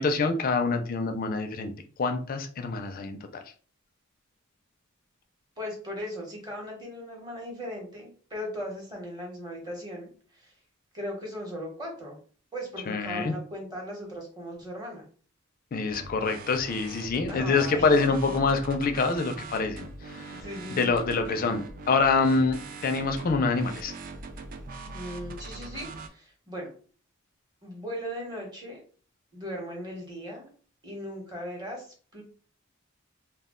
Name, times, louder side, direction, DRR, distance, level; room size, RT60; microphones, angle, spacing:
voice 1, 0.0-1.7 2.0-3.4 12.9-13.3 15.7-20.4 20.8-23.9, left 4 dB, 45° left, 6 dB, 0.4 m, -26 dB
voice 2, 5.6-10.5 10.9-12.2 12.5-15.0 17.3-17.9 20.3-21.0 24.9-26.7 27.6-28.8 29.3-30.5 30.8-32.2, equal, 20° right, -1 dB, 0.9 m, -38 dB
sound 1, 15.9-26.1, right 3 dB, 45° right, 0.4 m, -42 dB
2.2 x 2.2 x 3.6 m, 0.42 s
head